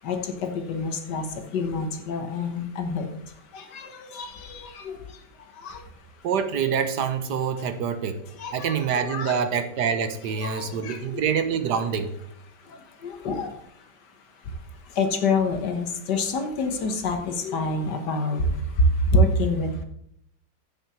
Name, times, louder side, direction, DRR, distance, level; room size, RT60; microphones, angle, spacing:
voice 1, 0.0-5.9 8.4-9.4 10.4-11.2 12.6-14.1 14.4-19.8, left 2 dB, 65° left, 6 dB, 1.7 m, -27 dB
voice 2, 6.2-8.2 8.5-12.2, right 7 dB, 65° right, 9 dB, 1.3 m, -26 dB
7.6 x 6.8 x 7.0 m, 0.72 s
omnidirectional pair, 2.1 m